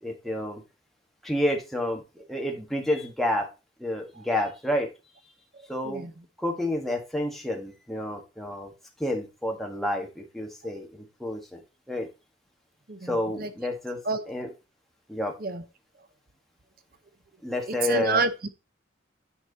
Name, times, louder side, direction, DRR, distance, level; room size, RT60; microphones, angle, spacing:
voice 1, 0.0-0.6 1.2-2.0 2.3-3.5 3.8-4.9 5.7-6.1 6.4-8.7 9.0-11.6 11.9-12.1 13.0-14.0 14.3-14.5 15.1-15.3 17.4-18.2, left 1 dB, ahead, 1.7 m, -29 dB
voice 2, 5.5-6.1 12.9-13.5 14.0-14.2 15.4-15.6 17.7-18.5, right 3 dB, 45° right, 0.8 m, -29 dB
9.9 x 4.7 x 4.1 m
head